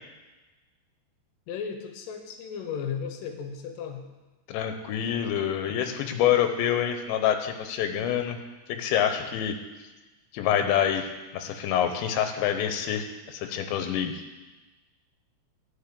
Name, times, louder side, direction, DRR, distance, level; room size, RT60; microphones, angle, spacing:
voice 1, 1.5-4.1, left 7 dB, 70° left, 5 dB, 2.2 m, -35 dB
voice 2, 4.5-8.4 8.7-9.6 10.3-14.2, left 9 dB, 90° left, 7 dB, 3.1 m, -26 dB
11.0 x 5.2 x 8.6 m, 1.2 s
omnidirectional pair, 5.0 m